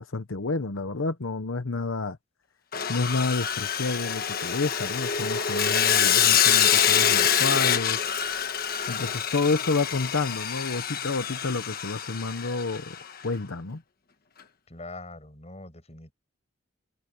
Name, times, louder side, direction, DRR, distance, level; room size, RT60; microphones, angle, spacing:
voice 1, 0.0-2.2 2.9-8.0 8.9-13.0 13.2-13.8, left 3 dB, 85° left, 1.0 m, -29 dB
Sawing, 2.7-13.0, left 8 dB, 50° left, 1.3 m, -25 dB
voice 2, 14.7-16.1, left 2 dB, 35° left, 6.7 m, -42 dB
head